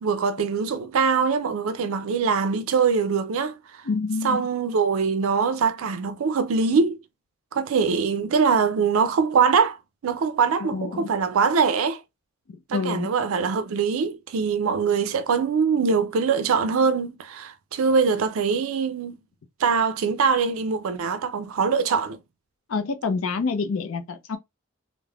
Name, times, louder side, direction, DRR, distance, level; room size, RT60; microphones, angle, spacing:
voice 1, 0.0-3.5 4.2-7.0 7.5-9.8 10.0-12.0 12.7-19.2 19.6-22.2, right 5 dB, 70° right, 0.4 m, -23 dB
voice 2, 3.8-4.5 10.6-11.1 12.5-13.1 22.7-24.4, left 4 dB, 65° left, 0.5 m, -27 dB
3.3 x 2.0 x 2.2 m
head